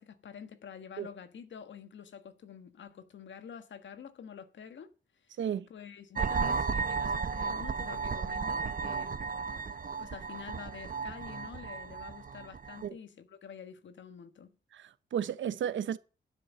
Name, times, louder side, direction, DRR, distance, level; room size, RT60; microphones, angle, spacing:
voice 1, 0.0-5.4 5.7-9.3 10.0-14.5, left 7 dB, 80° left, 1.5 m, -48 dB
voice 2, 5.4-5.7 12.8-13.0 14.7-16.0, right 9 dB, 90° right, 0.9 m, -33 dB
sound 1, 6.1-12.9, right 5 dB, 50° right, 0.9 m, -34 dB
12.0 x 7.1 x 7.3 m
cardioid pair, 80°, 19 cm